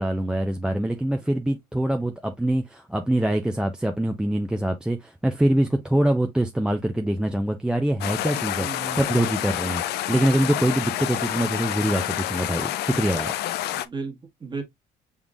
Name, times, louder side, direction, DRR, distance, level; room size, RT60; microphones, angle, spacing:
voice 1, 0.0-9.8 10.1-13.3, right 1 dB, 5° right, 0.5 m, -24 dB
sound 1, 8.0-13.9, left 13 dB, 75° left, 0.5 m, -28 dB
voice 2, 8.6-9.3 13.8-14.6, right 4 dB, 25° right, 1.6 m, -35 dB
5.8 x 3.6 x 2.4 m
cardioid pair, 110°, 17 cm